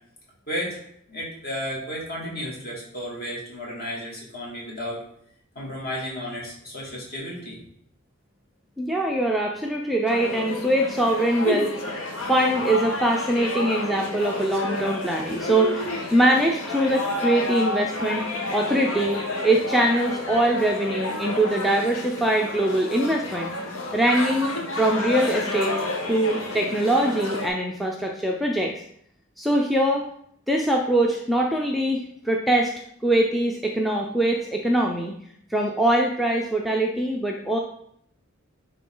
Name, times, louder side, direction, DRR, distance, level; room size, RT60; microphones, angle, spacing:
voice 1, 0.5-5.0 5.5-7.6, equal, 45° left, -4 dB, 2.5 m, -33 dB
voice 2, 8.8-11.7 12.3-18.3 18.5-23.5 23.9-25.8 26.1-28.8 29.4-30.0 30.5-32.7 33.0-35.1 35.5-37.6, right 1 dB, ahead, -1 dB, 0.5 m, -23 dB
sound 1, 10.1-27.5, left 2 dB, 70° left, 1.1 m, -30 dB
9.9 x 3.7 x 3.8 m, 0.69 s
head